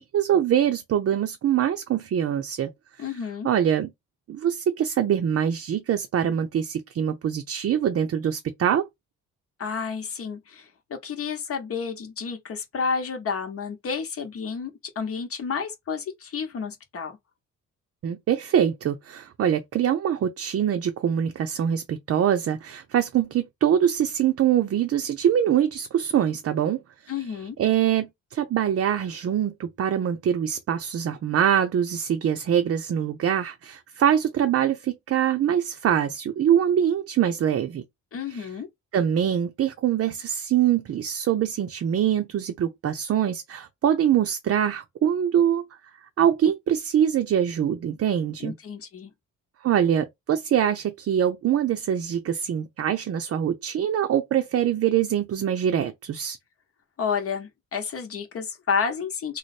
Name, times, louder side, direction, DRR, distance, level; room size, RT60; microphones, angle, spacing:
voice 1, 0.0-2.7 3.4-3.9 4.3-8.9 18.0-26.8 27.6-37.8 38.3-38.5 38.9-45.7 46.2-48.5 49.6-56.4, right 9 dB, 50° right, 0.6 m, -24 dB
voice 2, 3.0-3.5 9.6-14.7 15.0-17.2 27.1-27.6 38.1-38.7 48.4-49.1 57.0-59.4, left 6 dB, 50° left, 0.9 m, -30 dB
3.2 x 2.1 x 4.1 m
cardioid pair, 90°, 30 cm